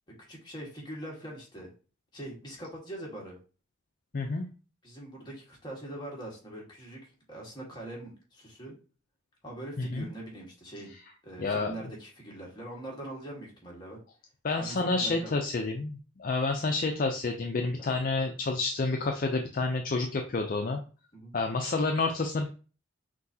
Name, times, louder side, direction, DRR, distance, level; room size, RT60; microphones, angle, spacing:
voice 1, 0.3-1.7 2.1-3.4 4.8-8.7 9.4-10.9 11.2-14.0 14.5-15.3 17.8-18.0 21.1-21.3, right 1 dB, 20° left, -3 dB, 1.6 m, -42 dB
voice 2, 4.1-4.4 9.8-10.1 11.4-11.7 14.4-20.8 21.3-22.5, left 3 dB, 45° left, 4 dB, 0.4 m, -29 dB
6.0 x 2.7 x 2.7 m, 0.36 s
head